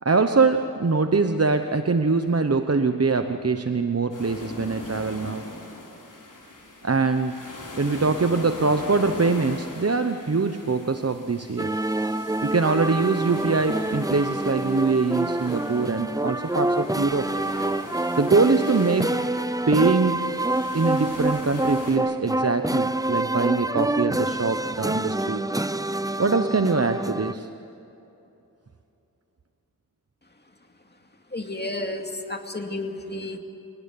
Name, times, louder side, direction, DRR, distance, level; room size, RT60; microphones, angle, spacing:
voice 1, 0.0-5.4 6.8-7.4 7.8-11.8 12.4-17.3 18.2-19.2 19.7-20.3 20.7-25.4 26.2-27.5, right 4 dB, 45° right, 7 dB, 1.0 m, -23 dB
sound 1, 4.1-21.9, left 2 dB, 65° left, 4.4 m, -41 dB
sound 2, 11.6-27.3, right 2 dB, 10° right, 0.6 m, -27 dB
voice 2, 31.3-33.4, left 2 dB, 30° left, 4 dB, 2.5 m, -32 dB
28.0 x 18.5 x 9.7 m, 2.9 s
wide cardioid pair, 60°, 34 cm